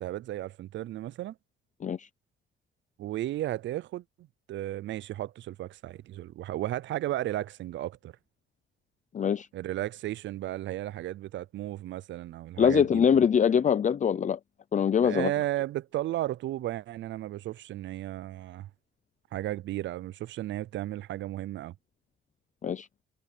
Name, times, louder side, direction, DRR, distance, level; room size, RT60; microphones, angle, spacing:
voice 1, 0.0-1.3 3.0-8.1 9.5-13.0 15.0-18.7 19.3-21.7, right 14 dB, 70° right, 0.5 m, -34 dB
voice 2, 9.1-9.5 12.6-14.4 14.7-15.3 22.6-22.9, left 7 dB, 40° left, 0.6 m, -23 dB
cardioid pair, 90°, 20 cm